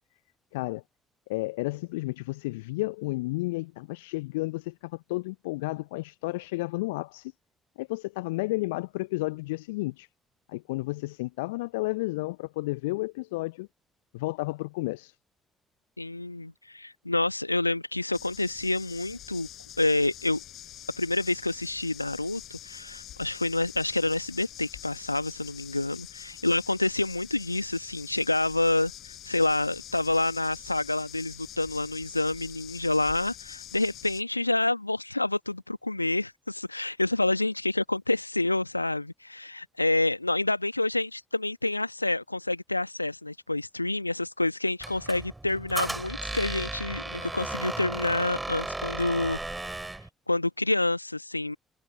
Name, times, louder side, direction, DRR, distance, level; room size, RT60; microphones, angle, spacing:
voice 1, 0.5-0.8 1.3-7.3 7.8-10.1 10.5-13.7 14.1-15.1, left 21 dB, 70° left, 0.8 m, -32 dB
voice 2, 16.0-19.5 19.8-20.4 21.0-49.4 50.3-51.6, left 2 dB, 90° left, 1.4 m, -28 dB
sound 1, 18.1-34.2, left 12 dB, 55° left, 4.5 m, -45 dB
Squeak, 44.8-50.1, right 2 dB, 15° right, 3.3 m, -35 dB
figure-of-eight pair, 45°, 0 cm